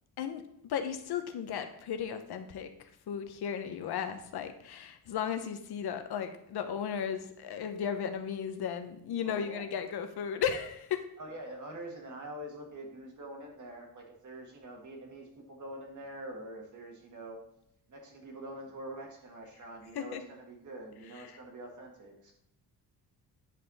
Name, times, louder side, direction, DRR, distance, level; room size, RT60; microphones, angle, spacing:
voice 1, 0.2-2.7 3.1-11.0 19.9-20.2 21.1-21.4, left 8 dB, 70° left, 8 dB, 0.9 m, -35 dB
voice 2, 9.2-9.7 11.2-17.4 17.9-22.3, right 1 dB, 45° right, 1 dB, 1.8 m, -45 dB
9.3 x 5.5 x 4.1 m, 0.74 s
wide cardioid pair, 160°, 40 cm